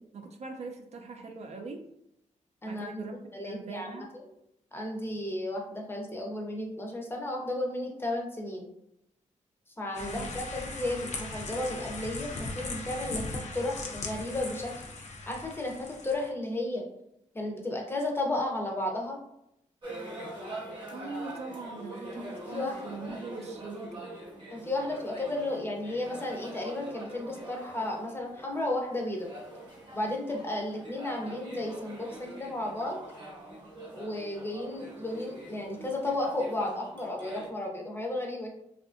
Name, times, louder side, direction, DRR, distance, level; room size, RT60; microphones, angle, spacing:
voice 1, 0.1-1.8 2.7-3.2 3.4-4.1 10.0-10.3 20.9-24.0, right 3 dB, 60° right, 3 dB, 0.4 m, -41 dB
voice 2, 2.6-3.0 3.3-4.1 4.7-8.7 9.8-14.7 15.3-16.8 17.3-19.2 22.1-23.1 24.5-29.3 29.9-33.0 33.9-38.5, left 1 dB, 20° left, 0 dB, 0.6 m, -33 dB
sound 1, 9.9-16.3, left 3 dB, 60° left, 0.5 m, -39 dB
sound 2, 19.8-37.5, right 1 dB, 35° right, 0.8 m, -44 dB
2.6 x 2.4 x 2.4 m, 0.79 s
cardioid pair, 105°, 13 cm